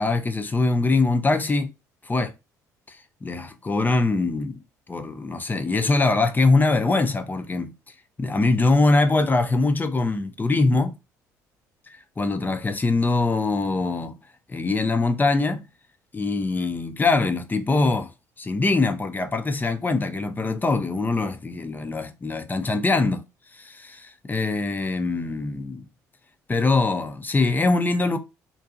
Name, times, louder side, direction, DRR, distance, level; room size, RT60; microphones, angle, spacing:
voice 1, 0.0-1.7 2.1-2.3 2.9-3.0 3.2-4.6 4.9-7.7 8.2-11.0 12.2-14.2 14.5-15.6 16.1-18.1 18.4-23.2 23.6-25.8 26.5-28.2, left 3 dB, 20° left, 0.5 m, -23 dB
2.5 x 2.2 x 2.5 m
hypercardioid pair, 55°, 9 cm